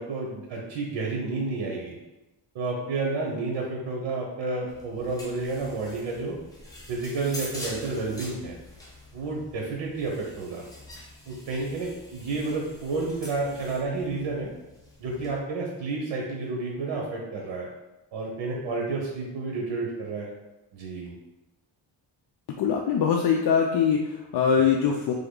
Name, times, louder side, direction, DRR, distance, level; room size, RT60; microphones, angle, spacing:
voice 1, 0.0-2.0 2.5-6.4 6.9-8.6 9.1-10.6 11.3-14.5 15.0-17.7 18.1-20.3 20.7-21.1, right 3 dB, 90° right, -1 dB, 1.0 m, -30 dB
sound 1, 4.7-15.4, left 1 dB, 10° left, 0.8 m, -45 dB
voice 2, 22.5-25.1, left 7 dB, 60° left, 1 dB, 0.5 m, -23 dB
3.8 x 3.5 x 3.8 m, 1.0 s
cardioid pair, 135°, 45 cm